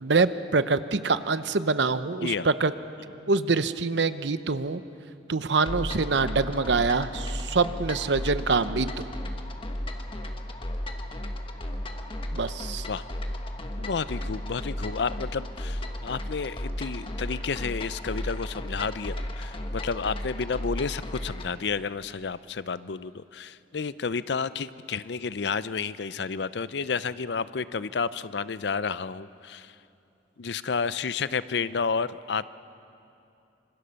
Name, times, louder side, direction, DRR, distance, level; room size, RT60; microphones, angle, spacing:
voice 1, 0.0-2.7 3.3-4.8 5.3-9.1 12.3-12.9, right 4 dB, 75° right, 13 dB, 0.8 m, -25 dB
sound 1, 5.7-21.5, left 1 dB, 30° left, 1.5 m, -34 dB
voice 2, 13.8-29.7 30.4-32.5, left 5 dB, 70° left, 16 dB, 0.6 m, -31 dB
26.0 x 25.0 x 6.9 m, 2.7 s
head